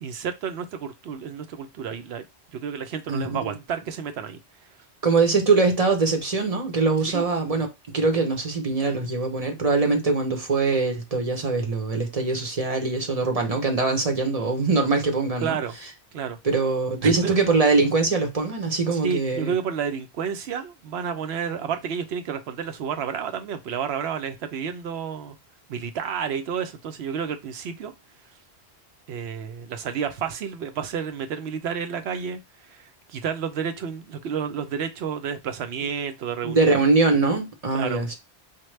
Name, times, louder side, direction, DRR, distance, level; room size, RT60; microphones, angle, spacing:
voice 1, 0.0-2.3 2.5-4.4 7.1-7.3 15.4-15.8 16.1-16.4 17.0-17.4 18.9-25.4 25.7-27.9 29.1-36.8 37.7-38.0, right 7 dB, 75° right, 0.9 m, -30 dB
voice 2, 5.0-15.6 16.4-19.5 36.4-38.2, right 3 dB, 40° right, 0.7 m, -22 dB
4.5 x 2.2 x 3.1 m
omnidirectional pair, 1.1 m